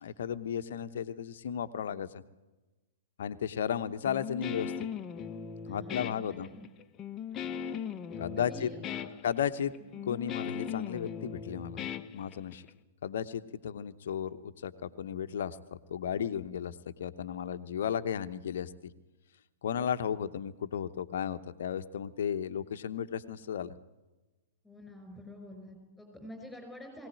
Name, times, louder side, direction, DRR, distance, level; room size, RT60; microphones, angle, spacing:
voice 1, 0.0-2.2 3.2-4.7 5.7-6.5 8.2-8.7 9.2-9.7 10.0-12.6 13.0-15.6 15.9-18.9 19.6-23.7, left 8 dB, 60° left, 11 dB, 0.9 m, -34 dB
Guitar, 4.1-12.7, left 8 dB, 25° left, 0.9 m, -39 dB
voice 2, 5.6-6.6 7.3-7.5 8.1-9.3 9.8-10.0 24.6-27.1, left 1 dB, ahead, 4 dB, 5.2 m, -48 dB
22.0 x 17.5 x 9.1 m, 1.1 s
figure-of-eight pair, 105°, 0 cm